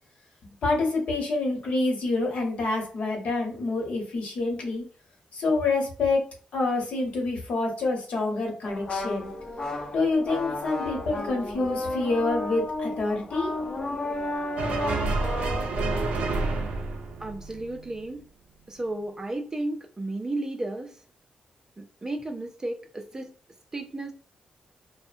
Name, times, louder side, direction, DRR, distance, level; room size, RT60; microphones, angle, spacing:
voice 1, 0.6-4.8 5.3-9.3 9.9-13.5, left 3 dB, 70° left, 0 dB, 1.0 m, -27 dB
sound 1, 8.6-15.7, left 2 dB, 35° left, 0.5 m, -32 dB
sound 2, 14.6-18.1, right 3 dB, 80° right, 0.5 m, -29 dB
voice 2, 17.2-18.2 18.7-20.9 21.8-23.3 23.7-24.1, right 2 dB, 25° right, 5 dB, 0.4 m, -33 dB
2.6 x 2.1 x 2.5 m, 0.41 s
wide cardioid pair, 125°, 2 cm